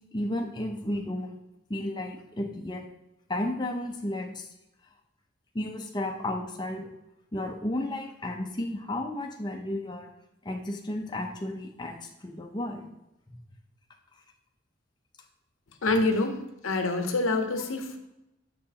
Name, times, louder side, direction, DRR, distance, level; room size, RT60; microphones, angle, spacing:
voice 1, 0.1-1.4 1.7-2.8 3.3-4.5 5.5-6.9 7.3-10.1 10.4-12.9, left 1 dB, 20° left, 2 dB, 0.6 m, -33 dB
voice 2, 15.8-16.4 16.6-18.0, left 2 dB, 85° left, 6 dB, 0.7 m, -26 dB
6.7 x 5.9 x 2.8 m, 0.92 s
head